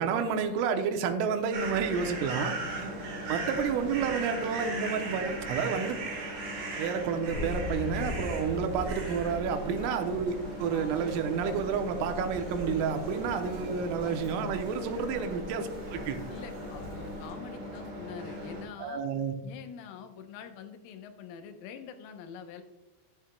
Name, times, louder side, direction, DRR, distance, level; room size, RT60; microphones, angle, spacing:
voice 1, 0.0-2.9 3.3-6.0 6.8-16.2 18.8-19.4, right 6 dB, 90° right, 6 dB, 3.4 m, -30 dB
sound 1, 1.5-18.6, right 2 dB, 55° right, 4.5 m, -38 dB
sound 2, 2.3-9.4 9.7-18.3, equal, 60° left, 3.0 m, -51 dB
sound 3, 7.3-17.3, left 2 dB, 25° left, 3.4 m, -41 dB
voice 2, 16.3-19.1 19.4-22.6, left 7 dB, 85° left, 7 dB, 3.4 m, -45 dB
11.0 x 10.5 x 2.2 m, 1.1 s
omnidirectional pair, 5.8 m